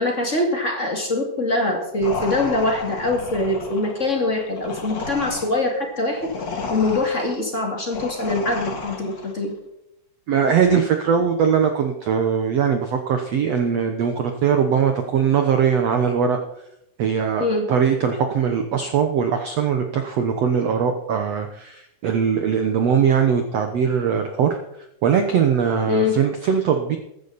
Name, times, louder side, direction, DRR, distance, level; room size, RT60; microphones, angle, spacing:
voice 1, 0.0-6.3 6.7-9.5 17.4-17.7 25.9-26.2, left 2 dB, 25° left, 2 dB, 1.9 m, -23 dB
sound 1, 2.0-9.4, left 3 dB, 45° left, 1.2 m, -32 dB
voice 2, 10.3-16.4 17.0-24.6 25.0-27.0, right 7 dB, 70° right, 6 dB, 1.6 m, -21 dB
15.0 x 12.5 x 4.1 m, 0.82 s
omnidirectional pair, 4.3 m